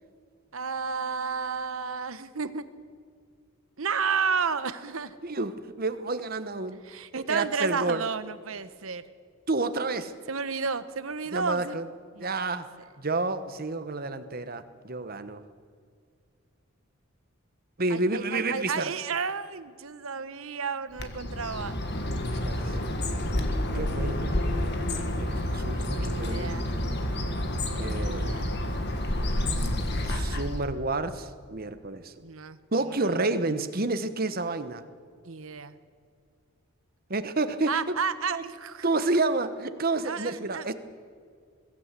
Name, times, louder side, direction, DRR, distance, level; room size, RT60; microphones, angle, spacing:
voice 1, 0.5-2.7 3.8-5.2 6.8-9.0 10.3-11.8 12.2-12.6 17.9-21.7 25.8-26.7 28.0-28.5 32.2-33.3 35.2-35.7 37.7-38.8 40.0-40.7, right 5 dB, 70° right, 13 dB, 1.0 m, -32 dB
voice 2, 5.2-6.8 7.1-8.0 9.5-10.1 11.3-11.9 12.2-12.7 13.0-15.4 17.8-18.9 22.2-22.8 23.7-24.2 25.0-27.1 27.8-28.3 29.4-32.1 32.7-34.8 37.1-37.9 38.3-38.4 38.8-40.7, right 2 dB, 45° right, 10 dB, 1.1 m, -30 dB
Bird, 21.0-30.7, left 1 dB, 50° left, 1.7 m, -29 dB
22.0 x 14.0 x 8.3 m, 2.1 s
head